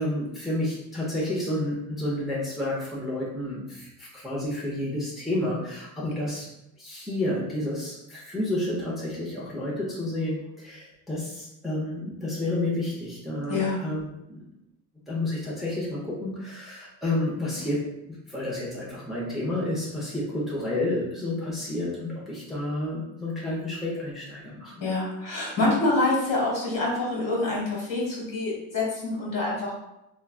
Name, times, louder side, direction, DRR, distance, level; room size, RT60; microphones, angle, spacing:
voice 1, 0.0-6.5 6.8-14.4 15.1-24.7 25.6-25.7, left 1 dB, ahead, -7 dB, 0.8 m, -30 dB
voice 2, 13.5-13.8 24.8-29.7, left 2 dB, 45° left, -4 dB, 1.5 m, -26 dB
3.0 x 2.3 x 2.3 m, 0.87 s
supercardioid pair, 85°, 43 cm